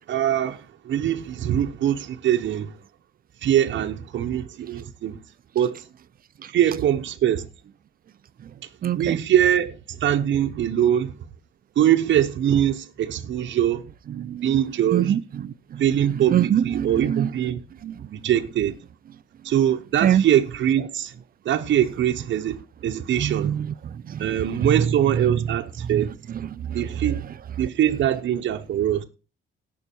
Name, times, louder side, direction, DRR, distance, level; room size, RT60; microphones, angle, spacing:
voice 1, 0.0-2.8 3.4-5.2 5.5-5.9 6.5-7.5 8.6-8.7 9.0-11.1 11.8-13.9 14.4-15.2 15.8-17.6 18.1-18.8 19.4-21.1 21.4-23.6 24.2-26.1 26.7-27.2 27.6-29.0, right 10 dB, 70° right, 1.0 m, -23 dB
voice 2, 8.8-9.2 14.1-14.6 14.9-15.8 16.1-17.5 17.8-18.1 20.0-20.2 23.2-24.9 25.9-26.0 26.3-26.8, right 9 dB, 50° right, 0.5 m, -25 dB
17.5 x 5.9 x 4.5 m
cardioid pair, 90°, 20 cm